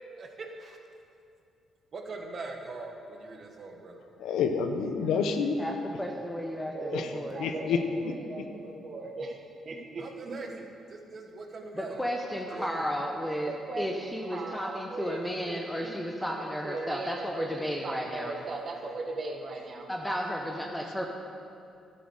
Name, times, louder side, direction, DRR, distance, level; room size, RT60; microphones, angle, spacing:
voice 1, 0.2-0.8 1.9-4.0 6.7-12.1 12.5-12.9 13.5-19.9, right 3 dB, 45° right, 2 dB, 1.7 m, -39 dB
voice 2, 4.2-5.6 6.9-7.1 7.4-7.8, left 6 dB, 85° left, 7 dB, 0.9 m, -28 dB
voice 3, 5.6-6.7 7.1-7.4 11.7-13.5 13.8-18.3 19.9-21.1, equal, 5° left, 1 dB, 1.0 m, -33 dB
11.5 x 9.2 x 6.5 m, 2.5 s
cardioid pair, 90°, 0 cm